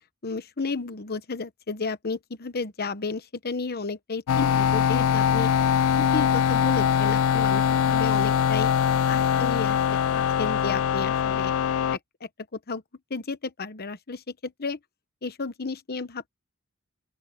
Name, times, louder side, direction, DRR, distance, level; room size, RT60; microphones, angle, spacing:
voice 1, 0.2-5.5 6.0-8.7 9.1-9.9 10.1-11.5 11.9-12.0 12.5-12.8 13.1-14.8 15.2-16.3, left 4 dB, 45° left, 1.0 m, -32 dB
sound 1, 4.3-12.0, left 8 dB, 70° left, 0.3 m, -22 dB
open air
head